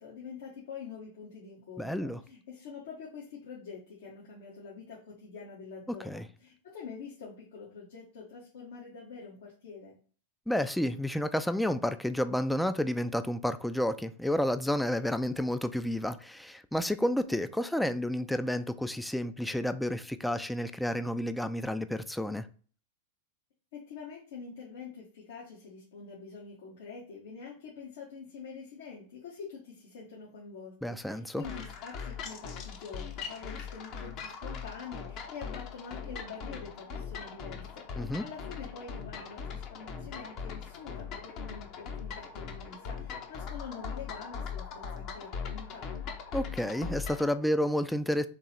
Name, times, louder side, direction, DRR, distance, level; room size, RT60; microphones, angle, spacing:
voice 1, 0.0-9.9 23.7-45.9, left 5 dB, 75° left, 1.3 m, -46 dB
voice 2, 1.8-2.2 5.9-6.3 10.5-22.5 30.8-31.4 38.0-38.2 46.3-48.3, left 1 dB, 5° left, 0.3 m, -30 dB
sound 1, 31.4-47.3, left 6 dB, 45° left, 0.8 m, -40 dB
3.7 x 3.0 x 4.3 m
hypercardioid pair, 115°, 0 cm